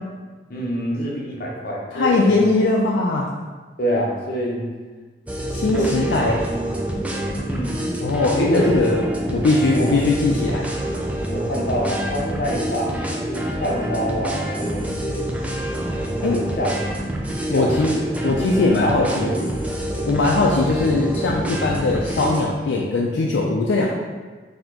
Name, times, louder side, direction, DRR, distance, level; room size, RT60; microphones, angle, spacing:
voice 1, 0.5-2.5 3.8-4.7 5.6-6.4 7.3-7.8 8.4-9.0 9.7-10.0 11.3-12.9 13.3-15.3 16.2-16.7 17.5-18.0 18.8-19.5 20.0-20.2, equal, 55° left, -3 dB, 0.8 m, -26 dB
voice 2, 1.9-3.3 5.5-6.4 8.0-10.7 16.2-16.4 17.5-17.9 18.2-19.3 20.1-23.9, left 3 dB, 80° left, -2 dB, 0.4 m, -20 dB
sound 1, 5.3-22.4, right 1 dB, 10° right, 0.3 m, -27 dB
4.1 x 2.8 x 2.8 m, 1.4 s
head